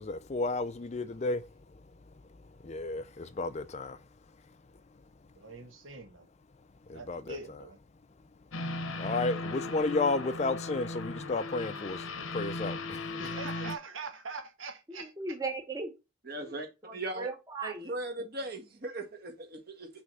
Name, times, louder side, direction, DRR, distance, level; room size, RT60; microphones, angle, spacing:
voice 1, 0.0-1.4 2.7-4.0 6.9-7.4 9.0-12.0 12.3-12.8, left 3 dB, 35° left, 0.4 m, -32 dB
voice 2, 5.4-6.3 6.9-7.8 13.1-15.1, right 4 dB, 80° right, 1.5 m, -43 dB
sound 1, 8.5-13.8, left 2 dB, 90° left, 0.9 m, -37 dB
voice 3, 14.9-15.9 16.4-16.5 16.8-17.9, right 3 dB, 20° right, 1.0 m, -38 dB
voice 4, 16.2-17.3 17.6-19.9, right 2 dB, 50° right, 1.7 m, -38 dB
6.1 x 3.4 x 5.4 m
head